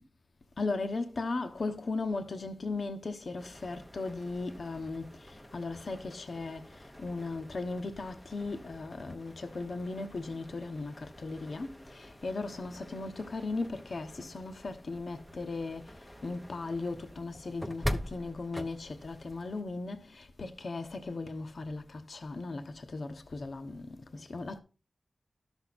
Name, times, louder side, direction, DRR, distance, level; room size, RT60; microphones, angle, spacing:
voice 1, 0.6-5.1 5.5-6.6 7.0-15.8 16.2-23.9 24.1-24.6, left 3 dB, 60° left, 0.9 m, -37 dB
sound 1, 3.4-19.6, equal, 5° left, 0.8 m, -45 dB
11.5 x 6.2 x 4.1 m
wide cardioid pair, 75°, 0 cm